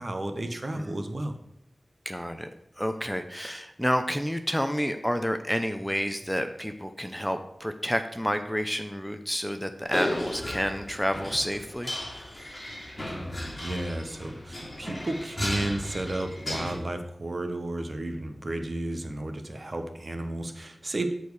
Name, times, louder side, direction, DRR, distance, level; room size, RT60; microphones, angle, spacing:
voice 1, 0.0-1.3 13.0-21.1, right 1 dB, 45° right, 6 dB, 1.4 m, -33 dB
voice 2, 2.0-2.5 2.8-12.6, equal, 5° left, 7 dB, 0.8 m, -30 dB
sound 1, 9.9-16.7, left 1 dB, 30° left, 3.6 m, -35 dB
13.5 x 4.6 x 4.9 m, 0.85 s
wide cardioid pair, 70°, 0 cm